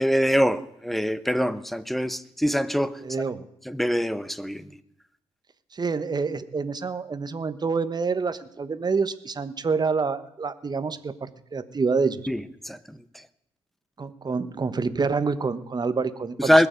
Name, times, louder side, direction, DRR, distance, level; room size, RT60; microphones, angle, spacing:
voice 1, 0.0-3.0 3.6-4.7 12.3-13.0 16.4-16.7, equal, ahead, 1.0 m, -24 dB
voice 2, 3.0-3.5 5.7-12.2 14.0-16.7, right 4 dB, 35° right, 1.1 m, -27 dB
21.0 x 7.0 x 5.2 m
supercardioid pair, 55°, 12 cm